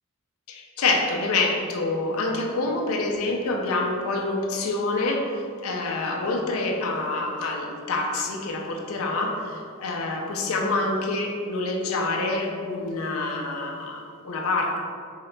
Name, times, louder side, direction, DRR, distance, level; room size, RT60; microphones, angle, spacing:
voice 1, 0.5-5.3 5.6-14.8, left 2 dB, 80° left, 1 dB, 0.5 m, -26 dB
3.9 x 2.8 x 3.2 m, 2.3 s
head